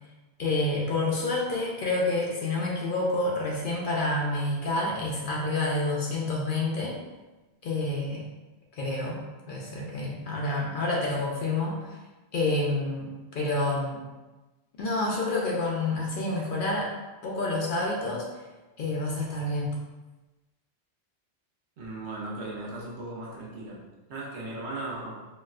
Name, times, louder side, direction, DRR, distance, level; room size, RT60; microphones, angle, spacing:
voice 1, 0.4-7.0 7.6-8.3 8.7-12.0 12.3-14.0 14.8-16.9 17.2-18.2 18.8-19.8, left 2 dB, 60° left, -3 dB, 0.6 m, -28 dB
voice 2, 21.8-25.3, right 2 dB, 75° right, -4 dB, 1.0 m, -37 dB
4.1 x 2.1 x 2.4 m, 1.2 s
omnidirectional pair, 1.1 m